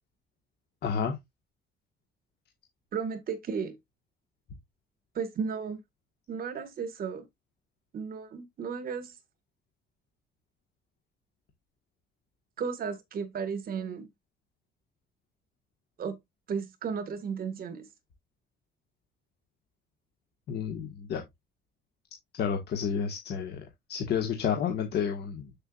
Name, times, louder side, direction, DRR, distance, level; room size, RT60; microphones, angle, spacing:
voice 1, 0.8-1.1 20.5-21.2 22.4-23.6 23.9-25.5, left 7 dB, 60° left, 1.7 m, -30 dB
voice 2, 2.9-3.8 5.1-5.8 6.3-7.3 7.9-9.1 12.6-14.1 16.0-16.2 16.5-17.9, right 6 dB, 50° right, 2.0 m, -34 dB
7.9 x 7.0 x 2.5 m
cardioid pair, 165°, 19 cm